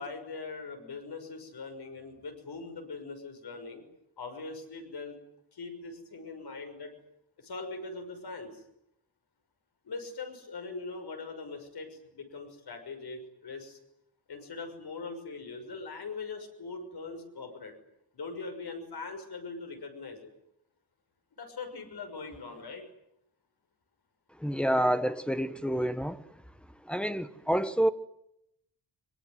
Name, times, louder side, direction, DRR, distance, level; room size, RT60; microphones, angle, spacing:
voice 1, 0.0-3.8 4.2-5.2 5.5-6.9 7.4-8.6 9.8-13.8 14.3-17.7 18.1-20.3 21.4-22.8, left 4 dB, 75° left, 6.4 m, -41 dB
voice 2, 24.4-26.2 26.9-27.9, equal, 5° left, 1.3 m, -28 dB
25.0 x 23.0 x 9.6 m
wide cardioid pair, 145°, 39 cm